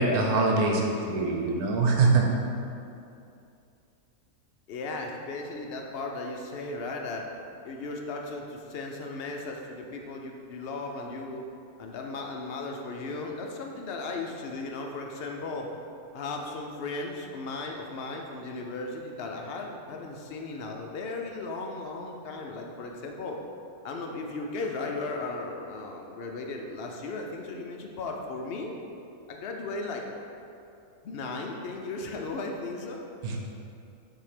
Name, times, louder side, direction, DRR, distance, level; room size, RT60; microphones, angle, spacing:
voice 1, 0.0-2.2 33.2-33.4, right 3 dB, 75° right, 0 dB, 1.3 m, -23 dB
voice 2, 4.7-7.3 7.6-11.5 11.8-15.7 16.1-23.4 23.8-28.7 29.3-30.0 31.0-33.0, left 3 dB, 65° left, 1 dB, 0.6 m, -36 dB
7.1 x 2.8 x 4.9 m, 2.6 s
omnidirectional pair, 1.6 m